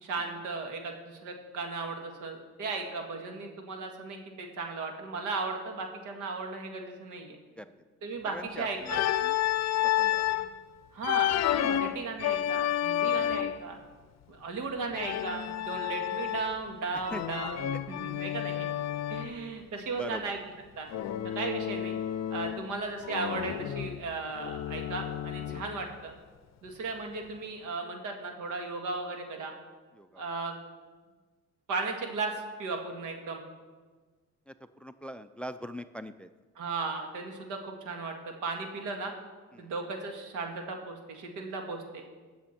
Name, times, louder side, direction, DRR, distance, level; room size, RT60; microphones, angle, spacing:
voice 1, 0.0-7.4 8.0-9.0 10.4-10.5 10.9-13.8 14.3-18.7 19.1-20.4 20.8-20.9 21.4-22.0 22.3-26.1 26.6-29.5 30.2-30.6 31.7-33.4 36.6-38.2 38.4-39.1 39.6-42.0, right 3 dB, 80° right, 3 dB, 2.0 m, -36 dB
voice 2, 8.2-9.4 9.8-10.3 13.1-13.5 17.1-17.2 18.2-18.6 20.0-20.3 25.5-25.7 29.9-30.2 34.5-36.3 39.5-39.7, equal, 5° left, 12 dB, 0.4 m, -42 dB
Organ, 8.9-10.5 11.0-13.7 14.9-16.7 17.1-19.4 20.9-22.7 23.0-25.8, left 11 dB, 60° left, 0.6 m, -30 dB
18.0 x 7.2 x 4.4 m, 1.4 s
cardioid pair, 90°, 30 cm